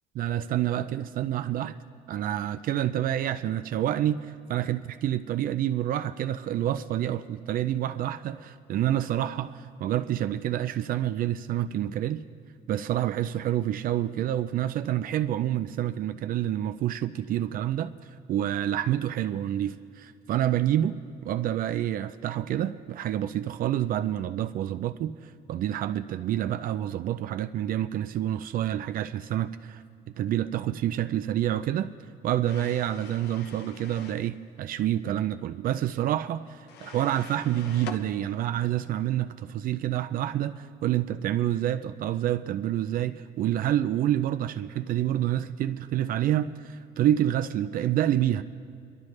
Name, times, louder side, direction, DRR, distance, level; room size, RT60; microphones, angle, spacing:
voice 1, 0.2-1.8 2.1-12.2 12.7-17.9 18.3-21.0 21.2-29.8 30.2-31.9 32.2-48.4, right 12 dB, 55° right, 0.4 m, -28 dB
sound 1, 32.5-34.3 36.7-38.0, left 6 dB, 80° left, 0.8 m, -44 dB
23.0 x 12.0 x 3.2 m
cardioid pair, 110°, 17 cm